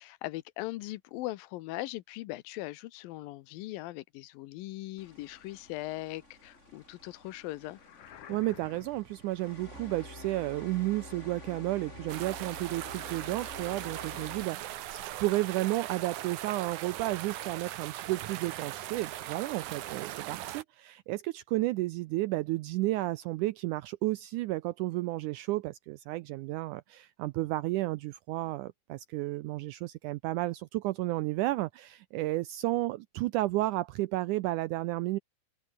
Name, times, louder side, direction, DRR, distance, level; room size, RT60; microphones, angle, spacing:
voice 1, 0.0-7.8, left 17 dB, 85° left, 2.5 m, -40 dB
sound 1, 5.0-14.4, left 1 dB, 20° left, 6.8 m, -49 dB
sound 2, 7.6-9.2, left 11 dB, 70° left, 3.1 m, -51 dB
voice 2, 8.3-35.2, right 18 dB, 85° right, 1.8 m, -32 dB
sound 3, 12.1-20.6, right 13 dB, 65° right, 2.3 m, -40 dB
omnidirectional pair, 4.1 m